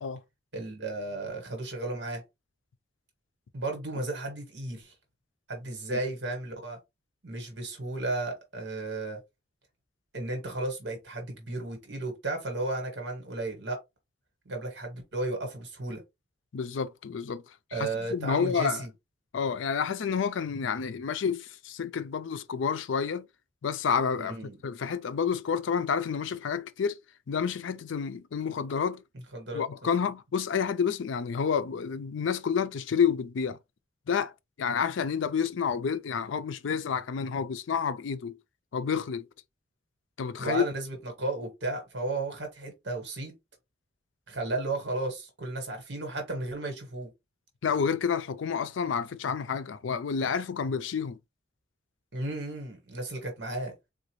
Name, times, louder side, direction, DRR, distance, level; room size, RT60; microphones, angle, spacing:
voice 1, 0.5-2.2 3.5-4.9 5.5-6.8 7.2-9.2 10.1-13.8 14.5-16.0 17.7-18.9 24.2-24.6 29.3-29.6 40.4-43.3 44.3-47.1 52.1-53.7, right 2 dB, 70° right, 1.3 m, -34 dB
voice 2, 16.5-17.4 17.7-18.8 19.3-23.3 23.6-24.4 24.6-27.0 27.3-29.0 29.5-33.6 34.1-34.3 34.6-38.4 38.7-39.3 40.2-40.6 47.6-51.2, left 6 dB, 90° left, 0.4 m, -29 dB
3.8 x 2.4 x 3.0 m
head